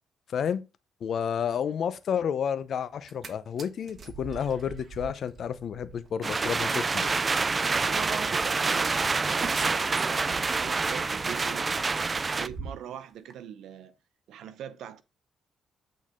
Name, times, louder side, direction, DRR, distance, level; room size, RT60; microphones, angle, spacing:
voice 1, 1.0-7.1, left 8 dB, 60° left, 0.7 m, -30 dB
sound 1, 2.9-3.3 3.6-12.9 13.3-13.4, right 5 dB, 50° right, 1.4 m, -44 dB
sound 2, 6.2-12.5, right 4 dB, 30° right, 0.4 m, -27 dB
voice 2, 7.8-11.7 12.4-13.9 14.3-15.0, right 9 dB, 80° right, 0.7 m, -41 dB
8.4 x 4.1 x 3.7 m
cardioid pair, 90°, 0 cm